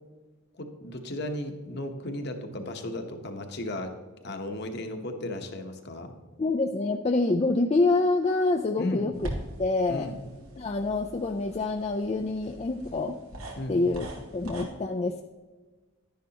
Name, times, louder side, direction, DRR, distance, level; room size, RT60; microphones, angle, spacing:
voice 1, 0.5-3.9 4.2-6.1 8.8-9.1 9.9-10.2 13.6-13.8, left 1 dB, 50° left, 5 dB, 1.0 m, -35 dB
voice 2, 6.4-9.1 9.6-10.1 10.6-13.2 13.7-14.1 14.3-15.2, left 3 dB, 30° left, 3 dB, 0.3 m, -26 dB
sound 1, 9.1-14.6, right 1 dB, 85° right, 1.8 m, -42 dB
11.5 x 10.5 x 2.9 m, 1.3 s
head